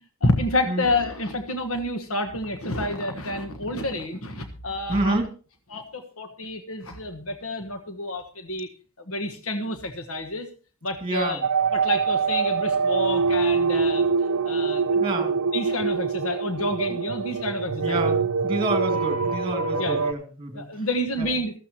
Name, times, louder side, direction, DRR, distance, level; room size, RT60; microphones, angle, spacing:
voice 1, 0.2-5.2 5.7-8.7 9.1-10.5 10.8-11.4 11.7-14.1 14.4-15.0 15.5-18.1 19.8-20.0 20.5-21.5, left 1 dB, 70° left, 6 dB, 1.4 m, -29 dB
voice 2, 4.9-5.3 11.0-11.4 15.0-15.4 16.9-17.0 17.8-20.9 21.2-21.3, right 1 dB, 25° right, 5 dB, 2.6 m, -28 dB
sound 1, 11.4-20.1, right 5 dB, 85° right, 0.6 m, -24 dB
15.0 x 14.0 x 2.9 m, 0.36 s
head